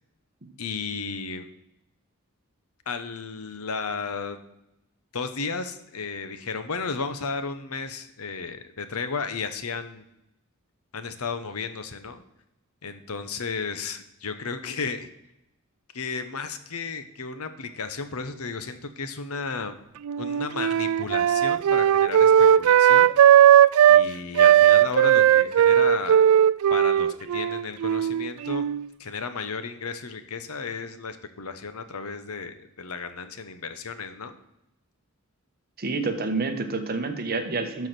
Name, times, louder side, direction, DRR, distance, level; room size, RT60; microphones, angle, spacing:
voice 1, 0.6-1.5 2.9-4.4 5.1-10.0 10.9-12.2 12.8-15.1 15.9-19.8 20.2-22.3 22.6-23.1 23.9-26.2 26.7-28.7 29.0-34.3, left 4 dB, 85° left, 10 dB, 1.0 m, -33 dB
Wind instrument woodwind instrument, 20.1-24.1 24.4-28.9, right 10 dB, 75° right, 0.3 m, -17 dB
voice 2, 35.8-37.9, right 3 dB, 45° right, 7 dB, 1.1 m, -28 dB
12.0 x 4.8 x 6.1 m, 0.85 s
head